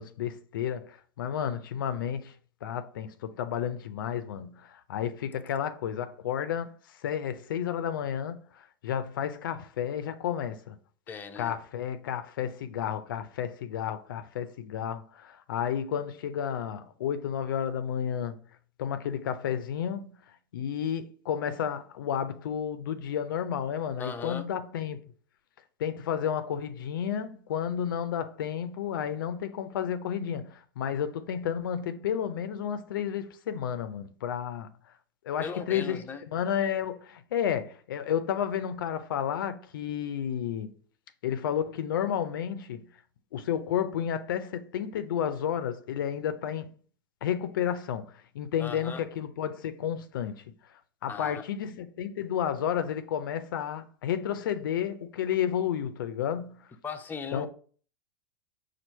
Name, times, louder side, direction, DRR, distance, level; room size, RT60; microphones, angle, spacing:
voice 1, 0.0-2.3 2.6-10.8 11.4-18.4 18.8-20.1 20.5-25.0 25.8-34.7 35.2-40.7 41.2-42.9 43.3-46.7 47.2-50.4 51.0-56.7 57.3-57.5, left 9 dB, 80° left, 0.5 m, -31 dB
voice 2, 11.1-11.5 24.0-24.4 35.4-36.2 48.6-49.0 51.1-51.4 56.8-57.5, left 5 dB, 15° left, 0.6 m, -38 dB
4.4 x 2.5 x 4.3 m
hypercardioid pair, 110°, 11 cm